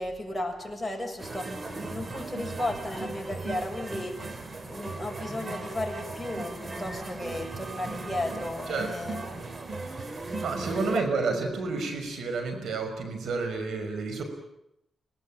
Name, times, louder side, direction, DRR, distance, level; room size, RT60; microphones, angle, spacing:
voice 1, 0.0-4.3 4.6-9.2, left 1 dB, 5° left, 2 dB, 7.2 m, -34 dB
sound 1, 1.2-11.0, right 3 dB, 35° right, 3.1 m, -37 dB
voice 2, 8.7-9.0 9.7-14.2, right 4 dB, 80° right, 7 dB, 5.9 m, -31 dB
25.5 x 18.5 x 9.0 m, 0.80 s
cardioid pair, 65°, 0 cm